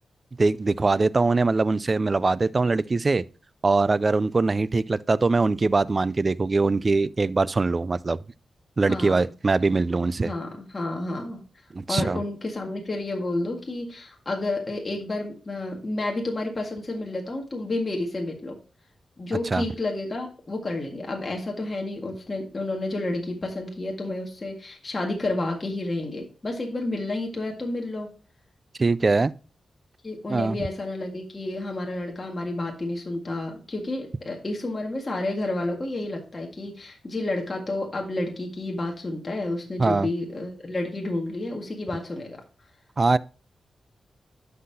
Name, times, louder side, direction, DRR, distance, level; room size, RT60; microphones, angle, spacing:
voice 1, 0.4-3.2 3.6-8.2 8.8-10.3 11.7-12.2 19.5-19.6 28.8-29.3 30.3-30.6 39.8-40.1 43.0-43.2, right 3 dB, 35° right, 0.4 m, -22 dB
voice 2, 8.9-9.3 10.2-11.4 11.9-18.6 19.2-28.1 30.0-42.4, left 2 dB, 35° left, 1.8 m, -30 dB
11.5 x 5.6 x 2.8 m
wide cardioid pair, 95°, 0 cm